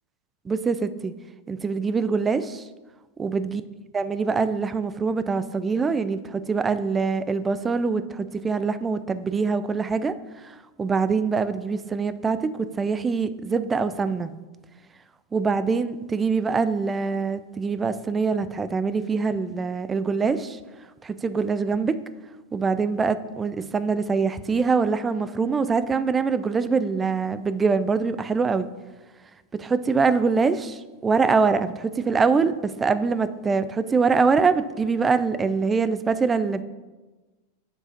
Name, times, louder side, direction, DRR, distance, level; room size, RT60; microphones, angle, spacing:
voice 1, 0.5-1.1 1.5-2.6 3.2-3.6 3.9-10.2 10.4-14.3 15.3-20.6 21.0-22.0 22.5-28.7 29.5-36.6, right 4 dB, 15° right, 13 dB, 0.4 m, -24 dB
6.3 x 4.9 x 6.4 m, 1.2 s
figure-of-eight pair, 90°, 0 cm